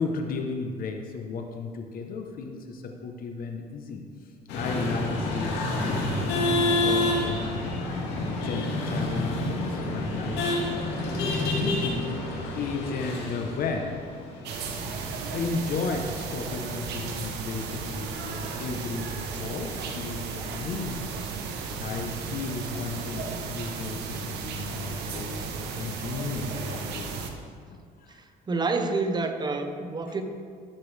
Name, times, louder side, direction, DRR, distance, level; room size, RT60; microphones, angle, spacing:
voice 1, 0.0-4.0 4.5-7.8 8.2-10.8 11.2-12.2 12.6-13.9 15.3-19.1 19.4-21.2 21.5-27.1 27.7-28.2 30.1-30.2, left 4 dB, 60° left, 4 dB, 1.0 m, -34 dB
sound 1, 4.5-14.9, left 2 dB, 85° left, 1.9 m, -28 dB
sound 2, 14.4-27.3, right 5 dB, 80° right, 1.0 m, -34 dB
voice 2, 28.1-30.2, right 3 dB, 25° right, 7 dB, 0.8 m, -28 dB
13.0 x 6.8 x 3.4 m, 2.1 s
cardioid pair, 110°, 17 cm